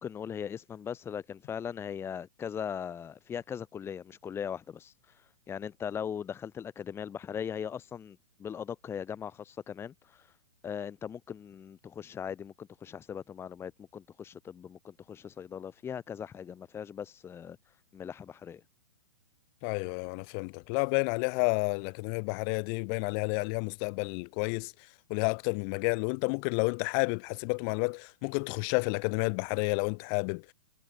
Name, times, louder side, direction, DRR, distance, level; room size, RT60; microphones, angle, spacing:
voice 1, 0.0-10.3 10.6-17.6 17.9-18.6, left 8 dB, 15° left, 2.5 m, -39 dB
voice 2, 19.6-24.7 25.1-30.5, left 40 dB or more, 35° left, 3.5 m, -30 dB
hypercardioid pair, 155°, 18 cm